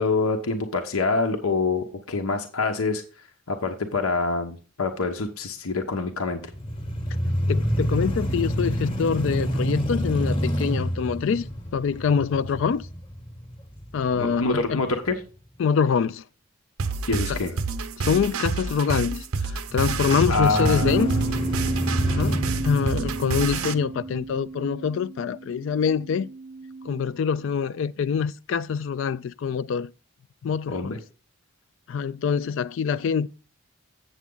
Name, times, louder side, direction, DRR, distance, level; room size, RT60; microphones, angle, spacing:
voice 1, 0.0-3.0 3.5-6.4 14.2-15.2 17.1-17.5 20.3-21.2 30.7-31.0, left 3 dB, 90° left, 1.0 m, -26 dB
sound 1, 6.5-14.6 15.1-15.2 19.7-24.2, equal, 25° left, 1.0 m, -28 dB
voice 2, 7.2-11.4 11.7-12.9 13.9-14.8 15.6-16.2 17.3-17.4 18.0-21.2 22.1-26.3 26.8-29.9 30.4-31.0 31.9-33.3, left 6 dB, 60° left, 0.3 m, -25 dB
sound 2, 16.8-23.7, right 4 dB, 90° right, 0.7 m, -28 dB
Bass guitar, 20.8-27.1, right 3 dB, 50° right, 0.3 m, -33 dB
8.2 x 7.2 x 3.8 m
head